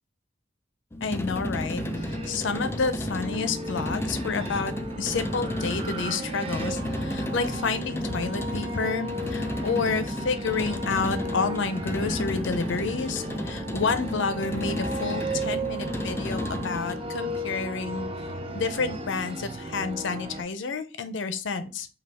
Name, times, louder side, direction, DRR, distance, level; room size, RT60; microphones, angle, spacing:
sound 1, 0.9-17.1, left 1 dB, 15° left, 0.4 m, -33 dB
voice 1, 1.0-4.7 5.0-18.1 18.5-21.9, left 4 dB, 70° left, 11 dB, 0.6 m, -30 dB
sound 2, 1.8-20.4, right 1 dB, 30° right, 0.6 m, -35 dB
5.4 x 2.3 x 3.4 m, 0.34 s
head